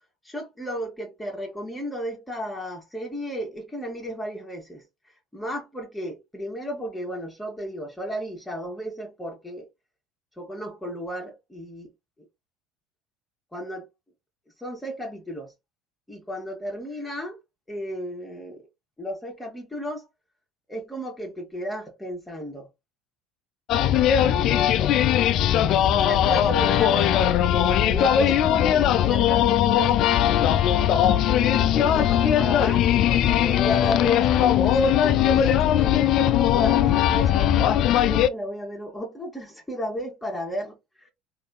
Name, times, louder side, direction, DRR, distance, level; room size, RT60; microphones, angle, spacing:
voice 1, 0.2-9.7 10.4-11.9 13.5-13.9 14.6-15.5 16.1-17.4 17.7-18.7 19.0-20.1 20.7-22.7 24.3-24.9 25.9-27.3 27.6-30.0 31.4-36.0 36.5-37.5 38.0-40.8, equal, 5° left, 1.1 m, -34 dB
sound 1, 23.7-38.3, left 10 dB, 50° left, 0.3 m, -20 dB
3.4 x 2.6 x 2.3 m
figure-of-eight pair, 70°, 0 cm